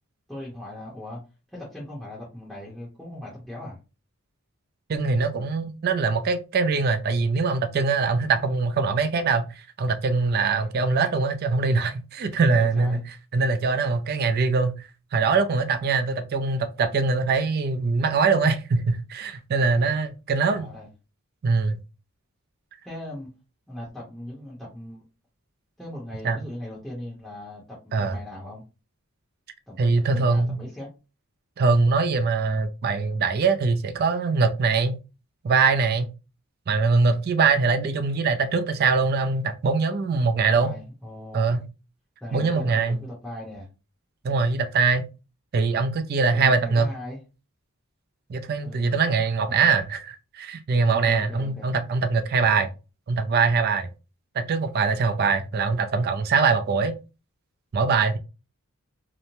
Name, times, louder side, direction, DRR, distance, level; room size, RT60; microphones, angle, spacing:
voice 1, 0.3-1.2 1.5-3.8 12.4-13.0 20.5-20.9 22.8-23.3 23.7-25.0 25.8-28.6 29.7-30.9 40.3-41.6 42.2-43.7 46.3-47.2 48.6-48.9 49.5-49.6 50.9-51.7, left 1 dB, ahead, 0.7 m, -38 dB
voice 2, 4.9-13.0 13.3-20.7 21.4-21.8 26.2-26.4 27.9-28.2 29.8-30.6 31.6-35.0 35.4-36.1 36.7-40.7 41.3-41.7 42.3-43.0 44.2-45.1 45.5-46.9 48.3-52.7 53.1-53.9 54.3-57.0 57.7-58.2, right 4 dB, 45° right, 0.3 m, -23 dB
3.0 x 2.1 x 2.6 m
head